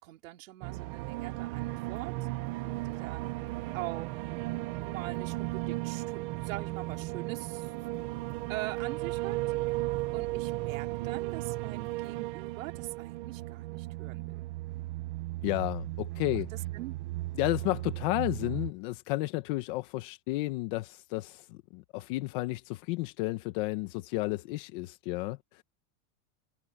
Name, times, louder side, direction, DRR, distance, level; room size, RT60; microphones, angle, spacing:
voice 1, 0.0-2.1 2.8-3.4 3.7-4.1 4.8-7.7 8.5-9.4 10.1-14.5 16.7-17.0, right 17 dB, 85° right, 3.0 m, -42 dB
sound 1, 0.6-18.7, right 19 dB, 25° right, 0.4 m, -35 dB
voice 2, 15.4-16.5 17.3-25.6, left 20 dB, 40° left, 0.9 m, -32 dB
supercardioid pair, 180°, 38 cm